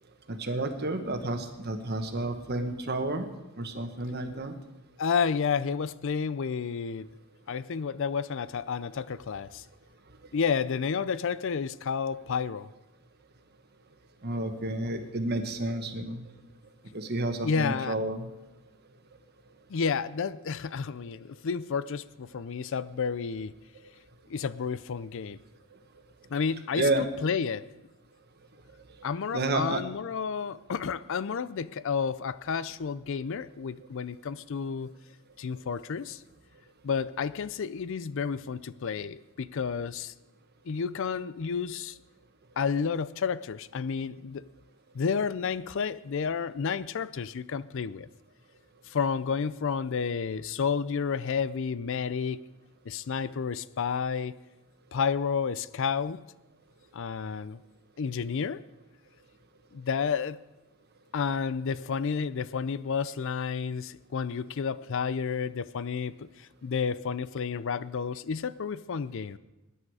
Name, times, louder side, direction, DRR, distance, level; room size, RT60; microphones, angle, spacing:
voice 1, 0.3-3.2 3.6-4.5 14.2-16.2 16.9-18.3 26.8-27.1 29.3-29.8, right 2 dB, 50° right, 1.3 m, -30 dB
voice 2, 5.0-7.1 7.5-9.6 10.3-12.7 17.4-18.0 19.7-23.5 24.3-25.4 26.3-27.7 29.0-34.9 35.4-36.2 36.8-40.1 40.7-42.0 42.6-44.5 44.9-48.1 48.9-52.4 52.9-54.3 54.9-56.2 56.9-57.6 58.0-58.6 59.7-60.4 61.1-69.4, left 6 dB, 60° left, 0.4 m, -31 dB
20.0 x 9.9 x 4.8 m
head